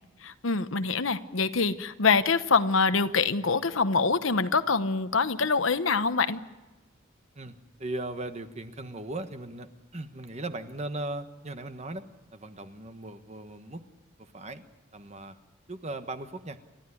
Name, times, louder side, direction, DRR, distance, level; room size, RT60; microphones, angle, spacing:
voice 1, 0.2-6.4, left 4 dB, 75° left, 11 dB, 1.1 m, -25 dB
voice 2, 7.3-12.1 12.3-13.8 14.2-14.6 14.9-15.4 15.7-16.6, right 2 dB, 35° right, 9 dB, 1.3 m, -38 dB
29.0 x 13.0 x 10.0 m, 1.2 s
head